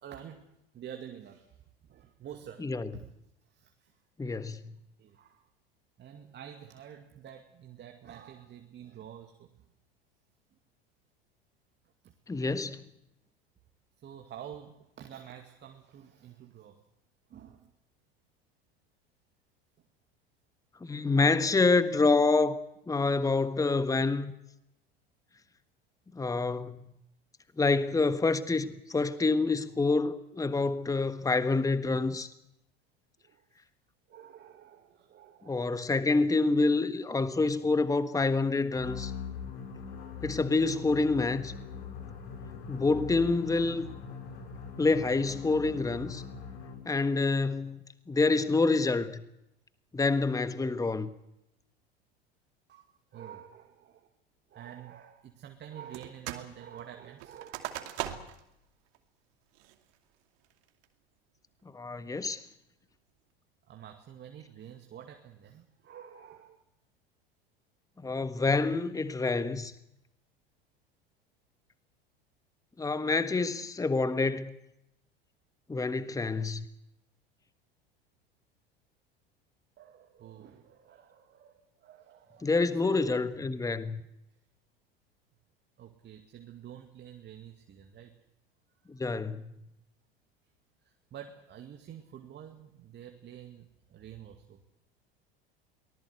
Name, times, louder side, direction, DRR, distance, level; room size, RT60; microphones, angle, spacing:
voice 1, 0.0-0.5 0.7-1.6 1.8-2.7 2.9-3.1 3.5-3.9 5.0-5.5 6.0-9.5 12.0-12.1 14.0-16.8 17.3-17.7 20.9-21.1 33.2-33.4 34.1-35.7 52.7-54.1 54.5-58.0 63.7-66.6 79.8-83.2 85.8-88.1 89.0-89.1 90.8-94.6, right 9 dB, 35° right, 2.3 m, -48 dB
voice 2, 2.6-2.9 4.2-4.6 12.3-12.8 20.8-22.6 22.9-24.3 26.1-26.9 27.6-32.3 35.4-39.1 40.2-41.5 42.7-43.9 44.8-46.2 46.8-49.2 49.9-51.1 61.7-62.4 68.0-69.7 72.8-74.5 75.7-76.6 82.4-84.0 88.9-89.5, left 3 dB, 10° left, 1.4 m, -27 dB
sound 1, 38.7-47.0, left 6 dB, 65° left, 6.2 m, -42 dB
sound 2, 55.9-56.5 56.8-58.5 58.9-59.0 59.5-59.9 60.4-60.8, right 13 dB, 55° right, 2.5 m, -39 dB
23.5 x 19.5 x 8.1 m
figure-of-eight pair, 80°, 30 cm